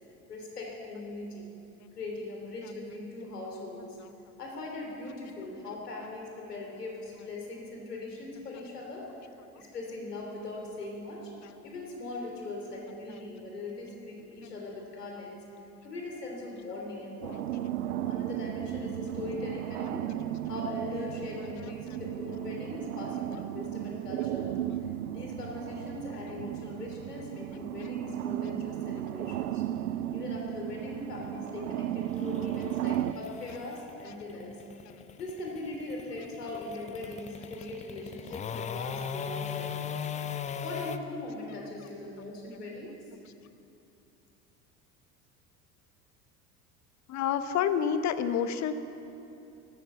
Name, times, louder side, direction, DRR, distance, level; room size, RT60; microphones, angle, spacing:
voice 1, 0.3-1.5 1.9-4.0 4.4-9.1 9.5-11.3 11.6-15.4 15.8-17.5 18.1-20.1 20.5-24.5 25.1-29.6 30.1-34.6 35.2-40.0 40.6-42.9, left 2 dB, 75° left, -1 dB, 3.1 m, -40 dB
sound 1, 17.2-33.1, right 13 dB, 65° right, 0.6 m, -35 dB
sound 2, 29.1-41.0, left 8 dB, 15° left, 0.5 m, -39 dB
voice 2, 47.1-48.7, left 8 dB, 35° left, 11 dB, 1.0 m, -28 dB
14.0 x 12.5 x 7.2 m, 2.8 s
figure-of-eight pair, 65°, 47 cm